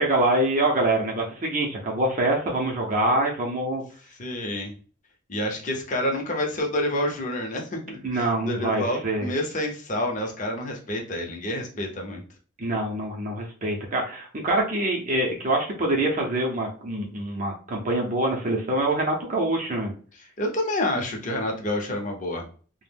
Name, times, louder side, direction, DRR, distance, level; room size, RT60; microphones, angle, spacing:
voice 1, 0.0-3.8 8.0-9.3 12.6-19.9, right 1 dB, 40° right, 0 dB, 0.5 m, -25 dB
voice 2, 4.2-4.7 5.3-12.2 20.4-22.4, left 1 dB, 40° left, 2 dB, 0.6 m, -28 dB
2.4 x 2.1 x 3.3 m, 0.41 s
head